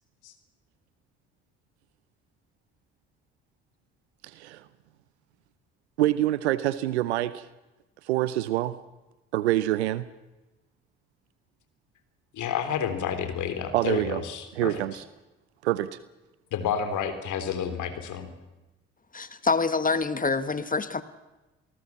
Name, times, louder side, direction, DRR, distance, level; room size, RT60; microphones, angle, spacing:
voice 1, 4.2-4.6 6.0-7.5 8.0-8.8 9.3-10.1 13.7-14.2 14.6-15.0 15.6-16.0, right 14 dB, 90° right, 16 dB, 0.7 m, -26 dB
voice 2, 12.3-14.8 16.5-18.3, left 7 dB, 65° left, 9 dB, 3.5 m, -30 dB
voice 3, 19.1-21.0, left 4 dB, 25° left, 12 dB, 1.8 m, -26 dB
27.5 x 19.0 x 7.3 m, 1.1 s
hypercardioid pair, 50°, 32 cm